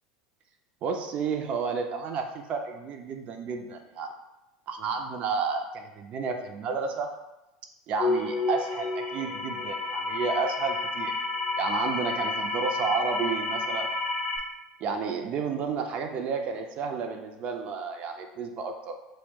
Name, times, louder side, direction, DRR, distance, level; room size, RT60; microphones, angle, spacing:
voice 1, 0.8-4.1 4.7-7.1 7.9-11.1 11.6-13.9 14.8-19.0, right 5 dB, 45° right, 5 dB, 0.3 m, -31 dB
sound 1, 8.0-14.4, left 3 dB, 30° left, 0.6 m, -30 dB
2.5 x 2.0 x 3.5 m, 0.97 s
hypercardioid pair, 80°, 3 cm